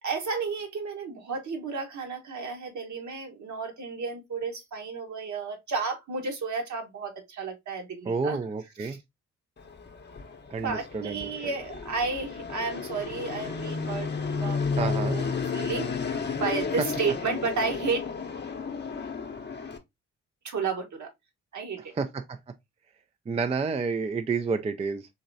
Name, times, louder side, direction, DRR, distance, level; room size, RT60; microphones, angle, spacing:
voice 1, 0.0-8.4 8.8-9.0 10.5-15.2 15.5-15.9 16.3-18.1 20.4-21.1 21.5-21.9, right 4 dB, 55° right, 1.3 m, -32 dB
voice 2, 8.1-9.0 10.5-11.3 14.8-15.2 22.0-22.4 23.3-25.1, right 4 dB, 20° right, 0.4 m, -29 dB
Fixed-wing aircraft airplane, 9.6-19.8, left 5 dB, 30° left, 0.8 m, -32 dB
3.9 x 3.0 x 2.5 m
hypercardioid pair, 40°, 35 cm